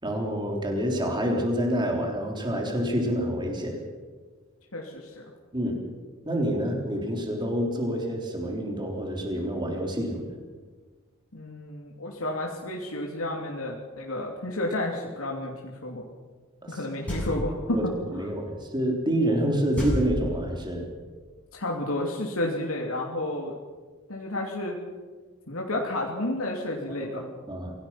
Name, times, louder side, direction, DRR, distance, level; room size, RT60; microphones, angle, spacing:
voice 1, 0.0-3.8 5.5-5.8 6.3-10.3 16.6-16.8 17.7-20.9 27.1-27.7, equal, 20° right, 1 dB, 3.7 m, -28 dB
voice 2, 4.7-5.2 11.3-16.0 16.7-18.2 21.5-23.5 24.1-24.8 25.5-27.3, left 1 dB, 85° left, -1 dB, 2.9 m, -31 dB
sound 1, 17.1-17.7 19.8-20.8, equal, 5° left, 7.8 m, -30 dB
25.5 x 18.0 x 5.9 m, 1.4 s
head